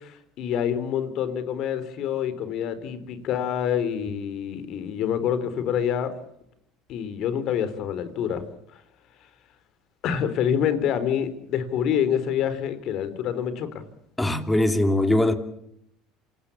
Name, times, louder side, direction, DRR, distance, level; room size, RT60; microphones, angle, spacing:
voice 1, 0.0-6.1 6.9-8.4 8.7-8.8 10.0-13.8, left 9 dB, 55° left, 4.1 m, -27 dB
voice 2, 14.2-15.4, left 1 dB, 10° left, 2.9 m, -21 dB
27.5 x 18.0 x 8.6 m
supercardioid pair, 115°, 0 cm